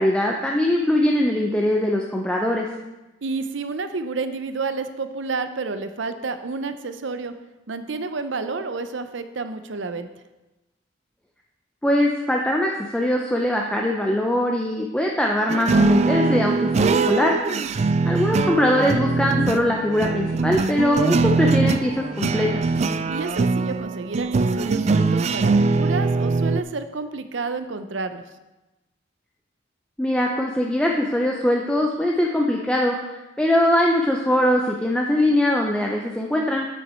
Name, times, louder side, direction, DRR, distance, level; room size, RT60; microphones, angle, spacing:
voice 1, 0.0-2.7 11.8-17.3 18.1-22.6 30.0-33.0 33.4-36.7, left 1 dB, 5° left, 0 dB, 0.6 m, -21 dB
voice 2, 3.2-7.3 7.7-10.1 16.5-16.8 23.1-28.2, right 4 dB, 70° right, 10 dB, 0.6 m, -30 dB
sound 1, 15.5-26.6, right 3 dB, 35° right, 0.3 m, -22 dB
8.3 x 8.1 x 4.4 m, 1.0 s
head